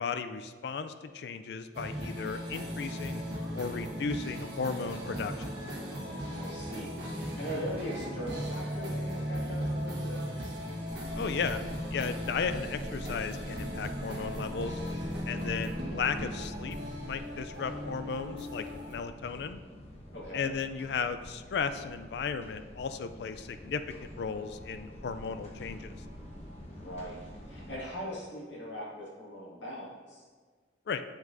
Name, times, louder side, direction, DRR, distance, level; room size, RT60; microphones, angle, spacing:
voice 1, 0.0-3.2 3.6-5.5 11.2-11.6 11.9-14.8 15.3-16.8 17.0-19.6 20.3-25.9 30.9-31.0, left 5 dB, 60° left, 10 dB, 0.3 m, -35 dB
sound 1, 1.7-18.9, equal, 70° right, 1.3 m, -37 dB
voice 2, 6.3-10.5 15.3-15.7 20.1-20.5 26.7-30.2, equal, 80° left, -5 dB, 1.9 m, -41 dB
sound 2, 10.8-27.8, equal, 35° left, 1.0 m, -46 dB
7.6 x 5.9 x 2.6 m, 1.5 s
head